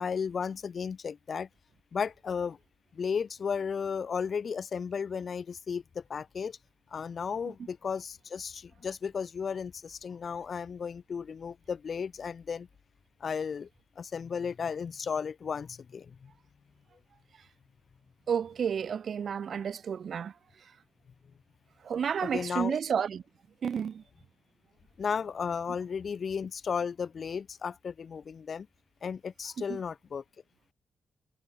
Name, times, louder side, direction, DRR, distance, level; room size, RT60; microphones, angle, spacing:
voice 1, 0.0-1.5 1.9-2.6 2.9-6.6 6.9-12.7 13.2-13.7 14.0-16.3 22.2-22.8 25.0-28.7 29.0-30.2, left 6 dB, 50° left, 2.6 m, -34 dB
voice 2, 18.3-20.3 21.8-23.2 23.6-24.0 29.7-29.8, right 7 dB, 55° right, 1.8 m, -31 dB
wide cardioid pair, 140°, 0 cm